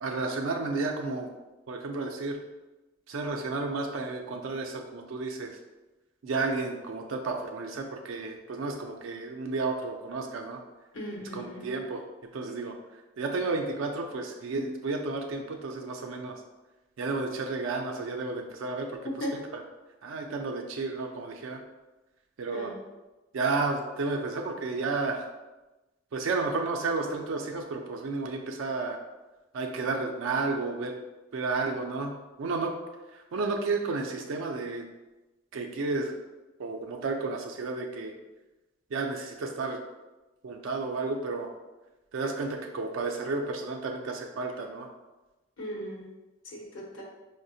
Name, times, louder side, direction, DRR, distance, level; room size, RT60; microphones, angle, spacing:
voice 1, 0.0-1.3 1.7-2.4 3.1-5.6 6.2-10.6 11.3-12.0 12.3-12.7 13.2-16.4 17.0-19.3 19.5-19.6 20.0-21.6 22.4-22.7 23.3-25.3 26.1-29.0 29.5-30.9 31.3-32.7 33.1-34.9 35.5-36.1 36.6-38.2 38.9-39.8 40.4-41.5 42.1-44.9, right 3 dB, 90° right, 2 dB, 0.4 m, -32 dB
voice 2, 10.9-11.7 19.0-19.3 22.5-22.8 45.6-46.1 46.4-47.0, equal, 80° left, -2 dB, 0.9 m, -37 dB
4.7 x 2.1 x 2.6 m, 1.1 s
head